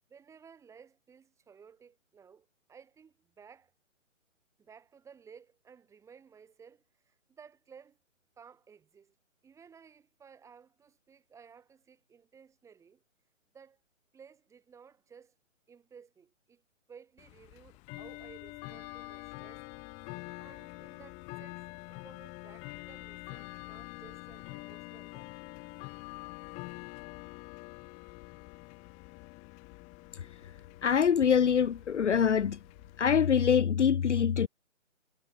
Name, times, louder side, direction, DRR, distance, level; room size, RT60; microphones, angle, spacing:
voice 1, 0.1-3.7 4.6-8.0 8.4-9.2 9.4-13.0 13.5-13.8 14.1-15.3 15.7-16.6 16.9-20.0 20.4-25.4, right 6 dB, 5° right, 7.8 m, -56 dB
Bell / Tick-tock, 17.2-33.5, left 29 dB, 15° left, 2.5 m, -46 dB
voice 2, 30.8-32.6 33.0-34.5, left 7 dB, 60° left, 0.8 m, -24 dB
figure-of-eight pair, 150°, 40 cm